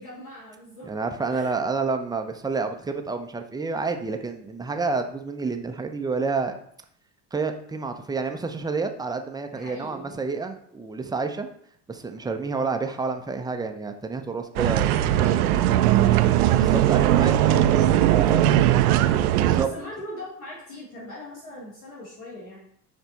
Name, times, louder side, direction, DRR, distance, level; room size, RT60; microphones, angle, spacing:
voice 1, 0.0-0.9 1.2-1.6 9.5-10.1 15.0-18.9 19.6-22.6, left 1 dB, 60° left, -8 dB, 2.6 m, -41 dB
voice 2, 0.8-6.6 7.3-11.5 11.9-15.5 16.5-18.5 19.4-19.7, right 4 dB, 10° right, 6 dB, 0.6 m, -29 dB
sound 1, 14.6-19.7, right 12 dB, 65° right, 0.6 m, -19 dB
9.6 x 3.4 x 4.1 m, 0.67 s
figure-of-eight pair, 65°, 49 cm